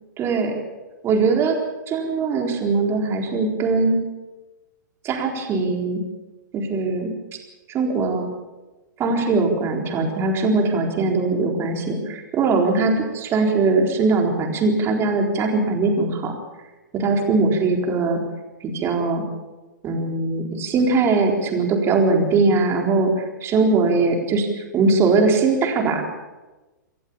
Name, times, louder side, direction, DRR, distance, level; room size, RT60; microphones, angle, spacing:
voice 1, 0.2-0.6 1.0-1.6 1.9-4.0 5.0-6.0 6.5-7.1 7.7-8.3 9.0-16.3 16.9-18.2 18.6-19.2 19.8-24.5 24.7-26.0, right 3 dB, 25° right, 2 dB, 4.1 m, -21 dB
27.0 x 14.5 x 7.2 m, 1.1 s
figure-of-eight pair, 115°, 10 cm